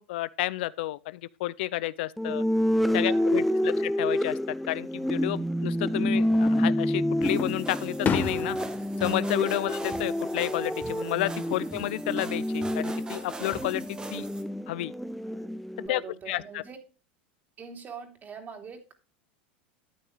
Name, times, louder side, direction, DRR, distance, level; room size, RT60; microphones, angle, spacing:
voice 1, 0.0-2.4 2.9-8.6 9.0-14.3 14.7-14.9 15.9-16.0 16.3-16.6, left 17 dB, 70° left, 0.5 m, -31 dB
sound 1, 2.2-15.9, equal, ahead, 0.5 m, -28 dB
voice 2, 3.1-3.8 15.8-16.8 17.6-18.9, right 6 dB, 30° right, 3.2 m, -43 dB
Fireworks, 6.2-6.9 7.4-10.5 10.8-11.4 12.9-13.8, left 7 dB, 35° left, 1.6 m, -34 dB
sound 2, 7.2-14.4, right 3 dB, 15° right, 1.6 m, -42 dB
13.0 x 9.1 x 2.4 m
hypercardioid pair, 100°, 6 cm